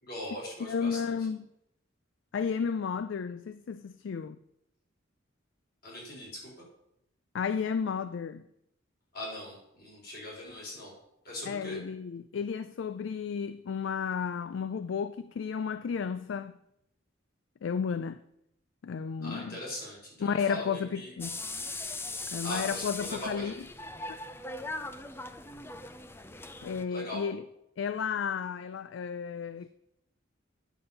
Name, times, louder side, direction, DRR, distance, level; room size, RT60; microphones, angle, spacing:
voice 1, 0.0-1.2 5.8-6.6 9.1-10.9 11.2-11.8 19.2-21.1 21.8-21.9 22.4-23.5 26.9-27.2, left 1 dB, 50° left, 4.0 m, -40 dB
voice 2, 0.6-1.4 2.3-4.4 7.3-8.4 11.4-16.6 17.6-18.2 18.8-19.6 20.2-21.4 22.3-23.7 24.0-24.2 26.6-27.4 27.8-29.7, left 6 dB, 70° left, 0.4 m, -33 dB
sound 1, 21.2-26.8, left 2 dB, 10° left, 0.5 m, -39 dB
9.4 x 6.9 x 5.4 m
head